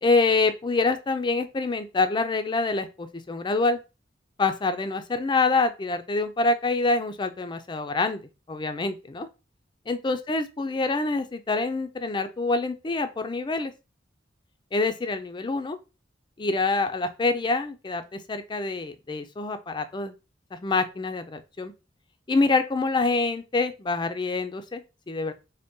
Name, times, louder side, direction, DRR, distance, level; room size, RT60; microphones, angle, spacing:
voice 1, 0.0-3.8 4.4-8.2 8.5-9.3 9.9-13.7 14.7-15.8 16.4-20.1 20.5-21.7 22.3-25.3, left 3 dB, 25° left, 9 dB, 0.4 m, -26 dB
3.9 x 2.1 x 3.6 m, 0.29 s
head